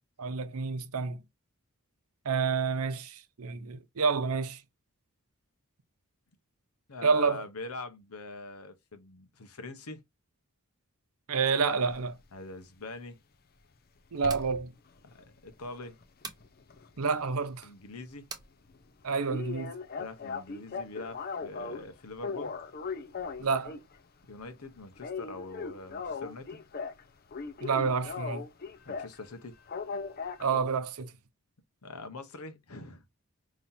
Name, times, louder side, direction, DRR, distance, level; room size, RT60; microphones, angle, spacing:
voice 1, 0.2-1.2 2.2-4.6 7.0-7.4 11.3-12.2 14.1-14.7 17.0-17.7 19.0-19.8 23.4-23.8 27.6-28.4 30.4-31.1, right 5 dB, 75° right, 0.7 m, -29 dB
voice 2, 6.9-10.0 12.3-13.2 15.0-15.1 15.4-16.0 17.6-18.2 20.0-22.5 24.3-26.6 28.9-29.5 31.8-33.0, left 3 dB, 80° left, 1.0 m, -43 dB
sound 1, 11.9-12.1 14.2-14.6 15.1-17.2 17.5-17.7 18.0-18.1 18.4-18.5 18.7-18.8 19.3-21.9 22.2-24.0 24.3-24.6 24.9-27.0 27.3-29.2 29.7-30.6, left 5 dB, 45° left, 0.6 m, -38 dB
sound 2, 14.2-14.5 16.2-16.5 18.3-18.5, right 4 dB, 15° right, 0.8 m, -42 dB
5.6 x 3.1 x 2.6 m
head